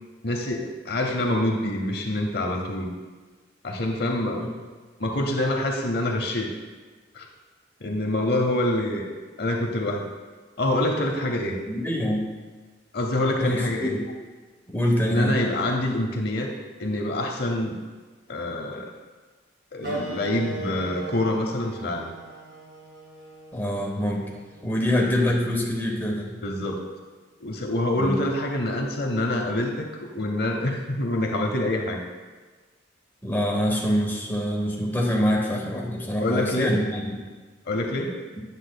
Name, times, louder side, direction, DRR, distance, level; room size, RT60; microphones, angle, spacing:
voice 1, 0.2-2.9 3.6-4.5 5.0-6.5 7.1-7.3 7.8-9.1 9.4-10.1 10.6-11.6 12.9-14.0 15.1-16.5 16.8-17.8 18.3-18.9 19.7-22.1 26.4-26.8 27.4-32.0 36.2-36.8 37.7-38.2, left 1 dB, 55° left, 2 dB, 0.8 m, -26 dB
voice 2, 11.7-12.3 13.4-14.0 14.7-15.4 23.5-24.2 24.6-26.4 27.9-28.2 33.2-37.2, equal, 10° left, -2 dB, 1.0 m, -25 dB
Wind instrument woodwind instrument, 19.8-24.9, right 2 dB, 55° right, 2.3 m, -38 dB
9.8 x 7.3 x 2.2 m, 1.3 s
head